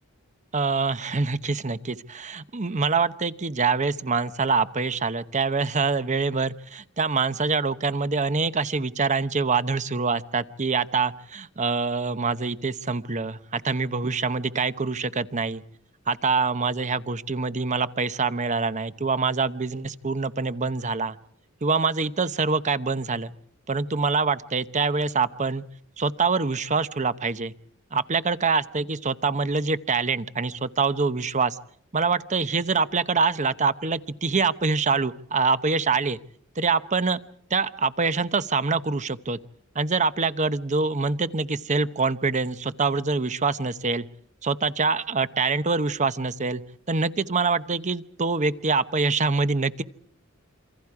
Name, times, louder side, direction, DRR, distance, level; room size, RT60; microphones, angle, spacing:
voice 1, 0.5-15.6 16.1-21.2 21.6-23.3 23.7-25.6 26.0-27.5 27.9-31.6 31.9-36.2 36.6-37.2 37.5-39.4 39.7-44.0 44.4-46.6 46.9-49.8, right 4 dB, 35° right, 13 dB, 0.9 m, -25 dB
27.5 x 25.0 x 4.8 m, 0.63 s
head